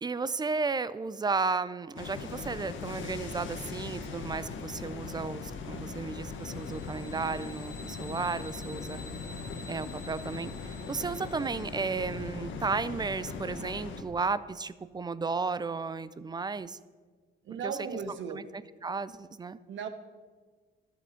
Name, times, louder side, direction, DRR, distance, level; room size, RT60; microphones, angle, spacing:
voice 1, 0.0-9.0 9.7-16.8 17.6-17.7 18.3-18.4 18.8-19.6, right 4 dB, 20° right, 16 dB, 0.4 m, -33 dB
sound 1, 2.0-14.0, left 4 dB, 75° left, 1.2 m, -40 dB
sound 2, 6.4-12.2, left 2 dB, 45° left, 1.3 m, -51 dB
voice 2, 17.4-18.5 19.7-19.9, right 6 dB, 75° right, 9 dB, 1.1 m, -36 dB
12.0 x 7.1 x 5.7 m, 1.4 s
cardioid pair, 90°, 20 cm